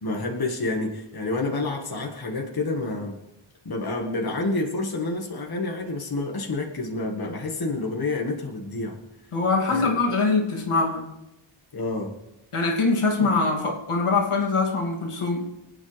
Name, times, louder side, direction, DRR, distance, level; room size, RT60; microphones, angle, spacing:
voice 1, 0.0-3.2 3.7-9.0 9.7-10.0 11.7-12.2 13.2-13.3, left 2 dB, 45° left, 1 dB, 1.8 m, -29 dB
voice 2, 9.3-11.1 12.5-15.5, left 3 dB, 85° left, 0 dB, 2.6 m, -23 dB
24.0 x 8.9 x 3.4 m, 0.94 s
wide cardioid pair, 90°, 50 cm